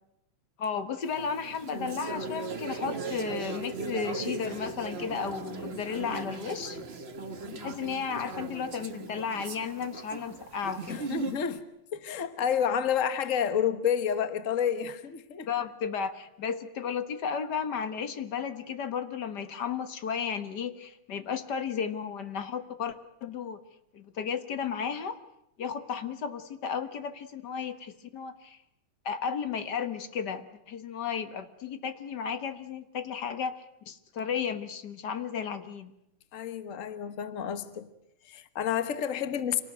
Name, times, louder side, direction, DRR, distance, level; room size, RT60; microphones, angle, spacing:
voice 1, 0.6-6.8 7.6-11.1 15.5-23.6 23.9-25.2 25.6-28.6 29.0-35.9, left 6 dB, 45° left, 1.5 m, -34 dB
sound 1, 1.0-11.5, right 4 dB, 45° right, 0.7 m, -38 dB
voice 2, 10.9-11.6 11.9-15.5 36.3-37.9 38.2-39.6, left 8 dB, 85° left, 0.6 m, -30 dB
26.5 x 18.5 x 9.2 m
omnidirectional pair, 3.3 m